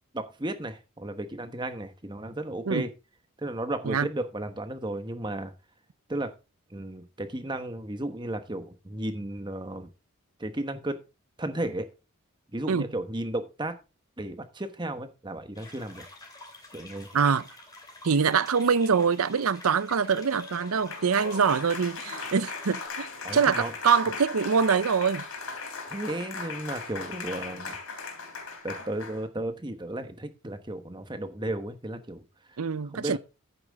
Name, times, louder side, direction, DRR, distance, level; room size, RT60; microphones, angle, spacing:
voice 1, 0.1-2.9 3.4-5.5 6.1-6.3 6.7-9.9 10.4-11.0 11.4-11.9 12.5-13.8 14.2-16.1 16.7-17.1 23.2-23.7 25.9-27.8 28.6-32.2 32.5-32.6 32.9-33.2, right 1 dB, 20° right, 1.1 m, -34 dB
sound 1, 15.5-22.9, left 2 dB, 15° left, 2.8 m, -48 dB
voice 2, 17.1-17.4 18.0-25.3 32.6-33.2, right 6 dB, 80° right, 0.6 m, -24 dB
Applause, 20.1-29.3, left 4 dB, 80° left, 3.4 m, -38 dB
10.5 x 9.0 x 3.5 m
head